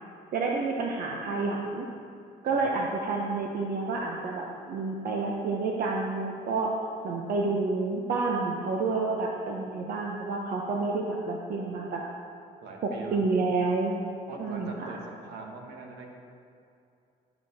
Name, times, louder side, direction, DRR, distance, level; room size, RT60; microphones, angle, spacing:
voice 1, 0.3-1.9 2.4-6.7 7.0-12.0 12.8-13.9 14.4-15.0, right 3 dB, 60° right, -1 dB, 1.0 m, -29 dB
voice 2, 12.6-13.3 14.3-16.1, right 3 dB, 80° right, 1 dB, 1.6 m, -42 dB
12.0 x 6.8 x 4.3 m, 2.6 s
cardioid pair, 110°, 17 cm